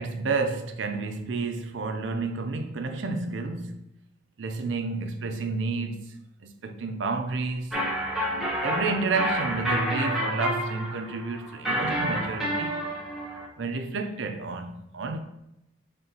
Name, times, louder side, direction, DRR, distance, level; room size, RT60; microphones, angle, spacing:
voice 1, 0.0-3.8 4.4-6.2 6.4-7.8 8.6-12.8 13.6-15.2, right 3 dB, 70° right, 0.5 m, -30 dB
sound 1, 7.7-13.5, equal, ahead, 0.7 m, -29 dB
5.4 x 3.4 x 2.8 m
head